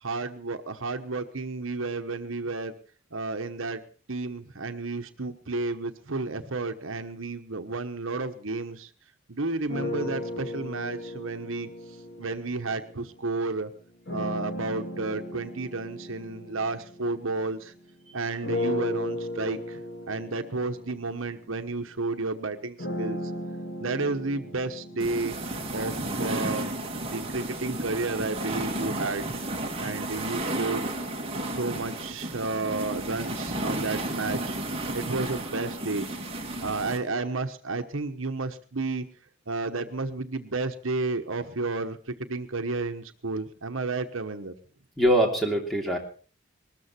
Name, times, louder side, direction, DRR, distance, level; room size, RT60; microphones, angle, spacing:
voice 1, 0.0-2.7 3.1-3.8 4.1-8.9 9.3-11.7 12.2-13.7 14.1-17.7 18.1-19.8 20.1-23.2 23.8-25.4 25.7-26.7 27.1-29.3 29.8-30.9 31.5-34.6 34.9-36.1 36.3-39.0 39.5-44.5, right 3 dB, 70° right, 8 dB, 1.2 m, -31 dB
sound 1, 9.7-13.3 14.1-17.8 18.4-26.4, left 1 dB, 55° left, 2.2 m, -36 dB
sound 2, 25.0-37.0, right 1 dB, 25° right, 2.5 m, -32 dB
voice 2, 45.0-46.0, right 1 dB, ahead, 1 dB, 3.1 m, -23 dB
20.5 x 13.5 x 4.4 m, 0.40 s
head